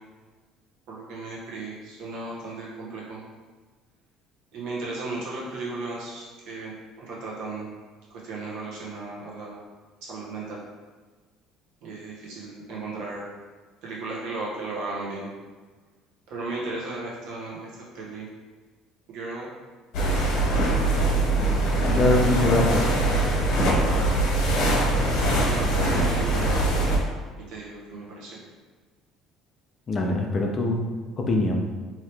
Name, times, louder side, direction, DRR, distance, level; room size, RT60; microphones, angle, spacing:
voice 1, 0.9-3.2 4.5-6.7 7.0-7.7 8.2-9.6 10.0-10.6 11.8-13.2 13.8-15.3 16.3-18.3 19.1-19.5 20.4-20.7 23.3-24.2 25.4-26.6 27.5-28.4, right 3 dB, 70° right, -5 dB, 1.1 m, -35 dB
sound 1, 19.9-27.0, right 1 dB, 70° left, 1.0 m, -22 dB
voice 2, 21.9-22.8 29.9-30.8 31.2-31.6, left 2 dB, 35° left, 2 dB, 0.5 m, -22 dB
3.0 x 2.8 x 3.3 m, 1.4 s
cardioid pair, 110°, 0 cm